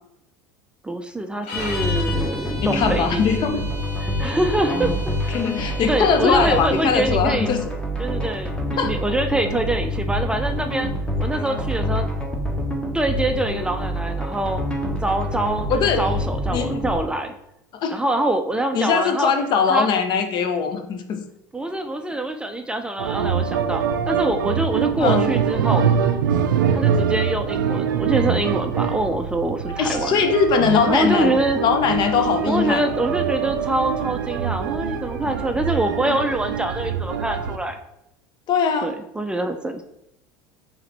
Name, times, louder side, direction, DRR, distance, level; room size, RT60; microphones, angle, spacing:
voice 1, 0.8-3.6 4.0-5.4 5.9-7.5 8.0-10.9 11.2-12.1 12.9-14.6 15.0-17.3 17.9-19.3 19.7-19.9 21.5-25.9 26.7-30.2 30.9-31.6 32.5-37.8 38.8-39.8, right 1 dB, 10° right, 6 dB, 0.4 m, -25 dB
sound 1, 1.4-7.2, left 3 dB, 65° left, 1.1 m, -35 dB
sound 2, 1.5-17.0, equal, 10° left, 1.0 m, -26 dB
voice 2, 2.6-3.6 4.7-4.9 5.3-7.6 8.8-8.9 15.7-16.1 16.5-16.8 17.8-18.0 18.7-21.2 25.0-25.3 29.8-32.8 38.5-38.9, left 6 dB, 45° left, 7 dB, 0.6 m, -21 dB
sound 3, 23.0-37.6, right 7 dB, 85° right, 0.4 m, -24 dB
4.7 x 2.9 x 3.3 m, 0.83 s
hypercardioid pair, 85°, 10 cm